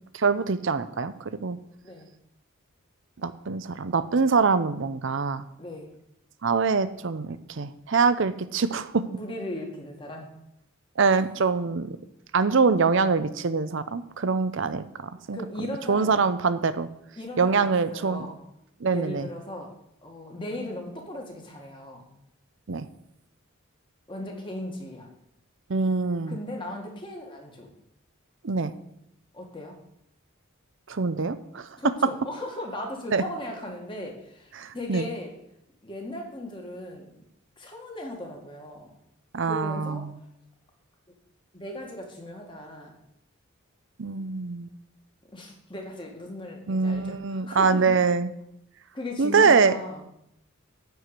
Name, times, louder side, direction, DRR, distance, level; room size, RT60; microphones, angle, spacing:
voice 1, 0.1-1.6 3.2-5.4 6.4-9.0 11.0-12.0 12.3-15.4 15.9-16.9 17.4-18.3 18.8-19.3 22.7-22.9 25.7-26.4 28.4-28.7 30.9-31.7 33.1-33.2 34.6-35.1 39.3-40.1 44.0-44.7 46.7-48.3 49.2-49.8, right 4 dB, 60° right, 12 dB, 0.6 m, -24 dB
voice 2, 5.6-5.9 9.1-10.3 15.2-16.2 17.2-18.4 18.9-19.7 20.0-22.1 24.1-25.1 26.3-27.7 29.3-29.8 31.8-35.3 35.8-37.2 37.6-38.9 39.5-40.1 41.5-43.0 45.3-47.9 48.9-50.1, left 1 dB, 25° left, 0 dB, 2.0 m, -37 dB
11.0 x 4.8 x 8.2 m, 0.78 s
head